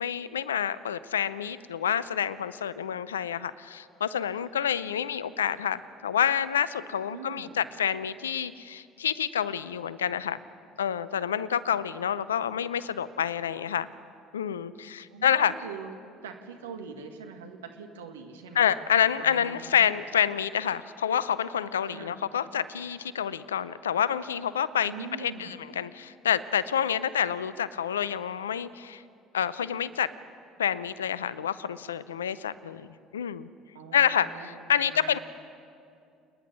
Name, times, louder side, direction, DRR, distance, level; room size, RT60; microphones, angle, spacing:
voice 1, 0.0-10.4 10.8-13.9 14.3-15.5 18.5-24.9 25.2-29.0 29.3-30.1 30.6-33.5 33.9-35.2, left 8 dB, 90° left, 17 dB, 0.5 m, -28 dB
voice 2, 7.1-7.6 15.1-15.9 16.2-18.7 19.2-19.9 21.8-22.2 24.8-25.6 33.7-35.2, right 5 dB, 85° right, 5 dB, 1.6 m, -43 dB
28.5 x 10.5 x 9.9 m, 2.4 s
hypercardioid pair, 65°, 0 cm